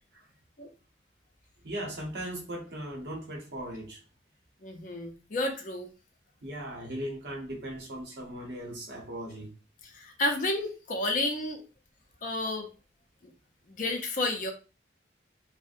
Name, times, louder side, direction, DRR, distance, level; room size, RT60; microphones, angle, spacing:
voice 1, 1.6-4.0 6.4-9.5, right 1 dB, 60° right, 0.8 m, -38 dB
voice 2, 4.6-5.9 9.9-11.6 12.2-12.7 13.7-14.5, left 2 dB, 45° left, 0.5 m, -31 dB
2.6 x 2.0 x 2.5 m
head